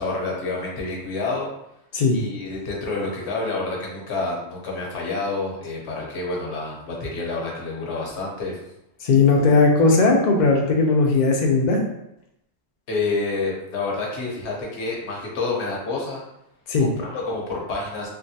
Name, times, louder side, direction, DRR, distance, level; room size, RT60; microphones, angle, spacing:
voice 1, 0.0-1.5 2.1-8.6 12.9-16.2 16.8-18.1, left 3 dB, 70° left, -3 dB, 1.1 m, -28 dB
voice 2, 9.0-11.8 16.7-16.9, left 3 dB, 50° left, 1 dB, 0.6 m, -17 dB
3.5 x 2.2 x 2.7 m, 0.83 s
omnidirectional pair, 1.2 m